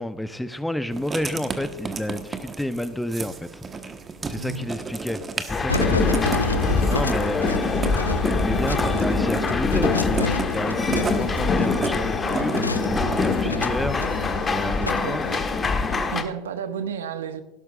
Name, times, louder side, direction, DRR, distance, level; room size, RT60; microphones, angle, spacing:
voice 1, 0.0-3.6 4.2-6.5 6.9-7.7 8.4-14.1 14.5-15.4, left 1 dB, 5° left, 0.8 m, -30 dB
Writing, 0.9-13.4, right 4 dB, 25° right, 1.3 m, -34 dB
voice 2, 4.4-4.7 14.6-15.2 15.9-17.4, right 7 dB, 75° right, 1.0 m, -33 dB
sound 1, 5.5-16.2, left 4 dB, 20° left, 1.4 m, -24 dB
sound 2, 5.7-15.4, left 3 dB, 90° left, 0.4 m, -30 dB
17.5 x 12.0 x 2.5 m
figure-of-eight pair, 75°, 0 cm